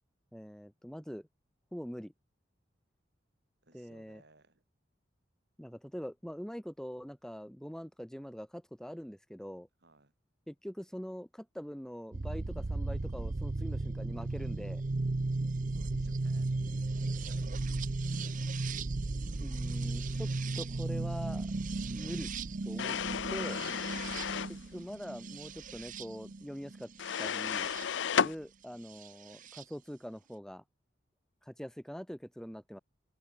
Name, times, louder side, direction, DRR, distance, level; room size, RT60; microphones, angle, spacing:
voice 1, 0.3-1.3 1.7-2.1 3.7-4.2 5.6-9.7 10.5-14.8 19.4-20.3 20.6-21.5 21.9-22.3 22.6-23.0 23.3-23.6 24.5-26.9 27.2-27.7 28.2-30.6 31.4-32.8, equal, 5° left, 1.3 m, -43 dB
voice 2, 3.6-4.6 9.8-10.1 15.3-16.8, right 2 dB, 60° right, 7.9 m, -64 dB
sound 1, 12.1-27.9 29.0-29.6, right 3 dB, 45° right, 0.6 m, -35 dB
sound 2, 22.8-24.6 27.0-28.3, left 7 dB, 70° left, 0.5 m, -33 dB
open air
head